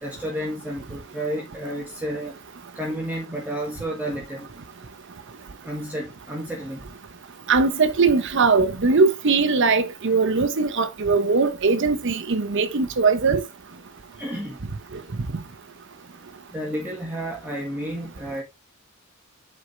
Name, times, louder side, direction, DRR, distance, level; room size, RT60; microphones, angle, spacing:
voice 1, 0.0-2.4 2.7-4.5 5.6-6.8 14.2-14.6 16.5-18.4, equal, 10° right, 1.4 m, -31 dB
voice 2, 7.5-13.4, right 4 dB, 60° right, 0.8 m, -20 dB
8.2 x 4.5 x 3.3 m
head